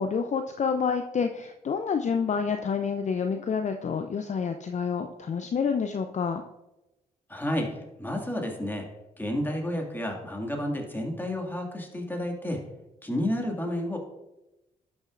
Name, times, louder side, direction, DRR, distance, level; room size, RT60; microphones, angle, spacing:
voice 1, 0.0-6.4, left 6 dB, 40° left, 7 dB, 0.5 m, -28 dB
voice 2, 7.3-8.9 9.2-12.6 13.0-14.0, left 1 dB, 10° left, 1 dB, 2.0 m, -31 dB
11.5 x 6.2 x 2.5 m, 0.97 s
hypercardioid pair, 45°, 18 cm